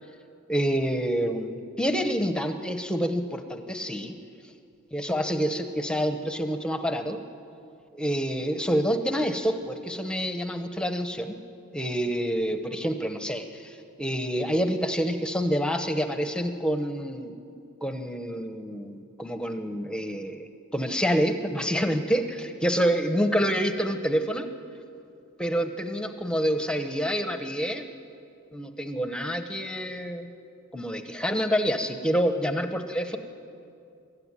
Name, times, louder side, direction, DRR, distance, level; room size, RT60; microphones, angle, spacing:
voice 1, 0.5-4.2 4.9-7.2 7.9-11.4 11.7-17.3 17.8-24.5 25.4-27.9 28.5-30.3 30.7-33.2, equal, 5° left, 6 dB, 0.9 m, -27 dB
23.5 x 14.0 x 9.8 m, 2.5 s
head